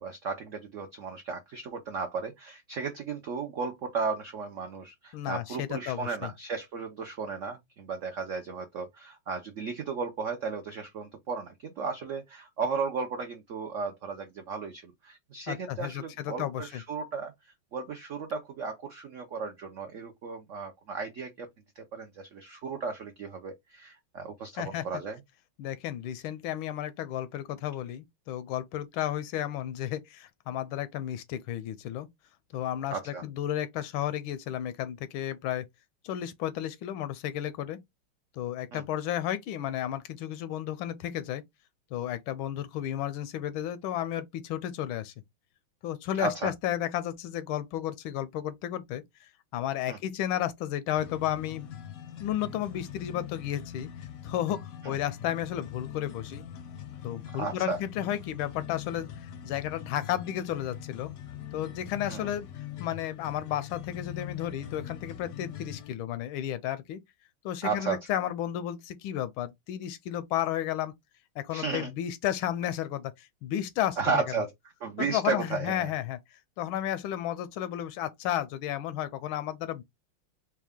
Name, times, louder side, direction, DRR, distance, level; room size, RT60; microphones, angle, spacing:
voice 1, 0.0-17.3 17.7-21.5 21.8-25.2 32.9-33.2 38.7-38.8 46.2-46.5 49.9-50.0 54.8-55.0 57.3-57.8 62.1-62.3 67.6-68.0 71.5-71.9 74.0-74.5 74.8-75.9, right 5 dB, 85° right, 0.6 m, -34 dB
voice 2, 5.1-6.3 15.5-16.8 24.6-24.8 25.6-32.1 32.5-35.7 36.0-37.8 38.4-41.4 41.9-45.1 45.8-49.0 49.5-51.7 52.2-53.9 54.2-56.4 57.0-61.1 61.5-62.5 62.8-67.0 67.4-70.9 71.4-74.2 75.0-76.2 76.6-79.8, left 11 dB, 90° left, 1.4 m, -33 dB
sound 1, 51.0-65.9, left 10 dB, 70° left, 0.8 m, -42 dB
4.5 x 2.2 x 3.5 m
omnidirectional pair, 2.2 m